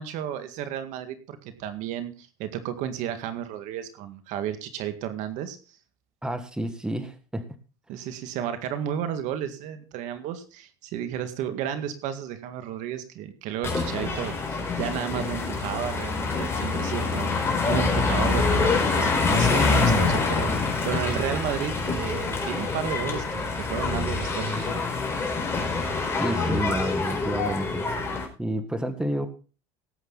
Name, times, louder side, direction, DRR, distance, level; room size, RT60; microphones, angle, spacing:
voice 1, 0.0-5.6 7.9-24.8, right 9 dB, 60° right, 10 dB, 1.9 m, -33 dB
voice 2, 6.2-7.4 26.2-27.9 28.4-29.3, right 1 dB, 5° right, 9 dB, 1.6 m, -29 dB
sound 1, 13.6-28.2, left 4 dB, 20° left, 4.5 m, -25 dB
18.0 x 8.2 x 4.0 m, 0.35 s
supercardioid pair, 120°, 14 cm